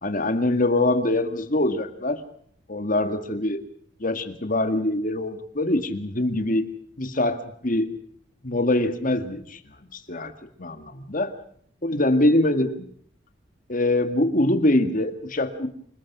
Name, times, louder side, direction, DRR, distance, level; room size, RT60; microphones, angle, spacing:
voice 1, 0.0-2.2 2.7-3.6 4.0-6.7 7.0-7.9 8.4-9.6 9.9-10.3 10.6-11.4 11.8-12.9 13.7-15.7, left 1 dB, 45° left, 9 dB, 2.0 m, -23 dB
27.5 x 20.0 x 6.1 m, 0.62 s
head